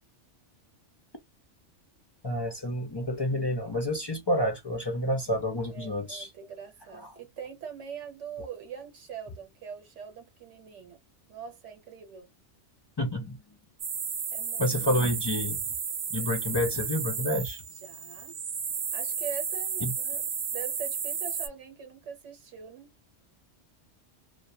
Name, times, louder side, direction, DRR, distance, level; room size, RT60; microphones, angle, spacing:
voice 1, 2.2-6.3 6.9-7.2 13.0-13.4 14.6-15.6 16.1-17.6 19.8-19.9, left 1 dB, 40° left, 0.3 m, -29 dB
voice 2, 5.7-11.0 11.3-12.3 14.3-14.7 17.8-18.4 18.9-22.9, right 7 dB, 80° right, 1.1 m, -43 dB
sound 1, 13.8-21.5, right 6 dB, 60° right, 0.8 m, -33 dB
2.2 x 2.1 x 2.6 m
omnidirectional pair, 1.2 m